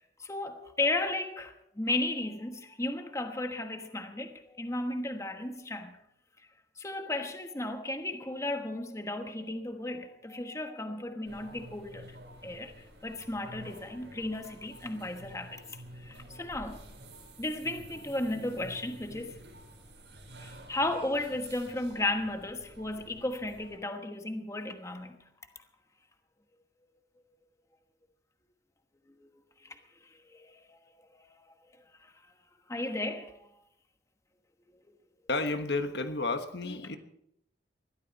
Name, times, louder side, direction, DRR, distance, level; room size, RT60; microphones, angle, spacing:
voice 1, 0.0-6.0 6.8-12.1 12.4-12.8 13.0-15.6 16.0-16.8 17.4-19.4 20.4-25.2 29.6-29.8 30.3-30.8 32.0-32.1 32.7-33.3, left 2 dB, 15° left, 1.2 m, -34 dB
sound 1, 11.2-23.8, right 1 dB, 80° right, 7.8 m, -50 dB
voice 2, 35.3-37.0, left 3 dB, 70° left, 1.3 m, -31 dB
21.0 x 14.0 x 4.1 m
head